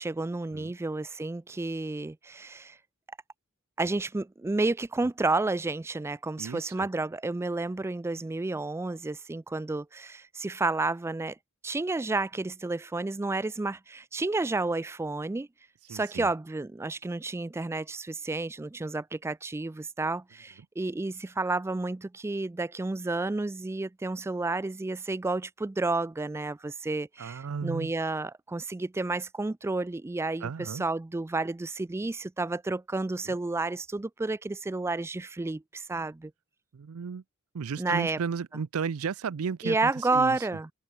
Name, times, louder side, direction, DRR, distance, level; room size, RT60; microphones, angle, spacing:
voice 1, 0.0-2.8 3.8-11.4 11.6-15.5 15.9-36.3 37.8-38.2 39.6-40.7, right 3 dB, 10° right, 0.3 m, -31 dB
voice 2, 6.4-6.9 15.9-16.3 27.2-27.9 30.4-30.8 33.2-33.4 36.7-37.2 37.5-40.5, right 6 dB, 85° right, 0.5 m, -34 dB
head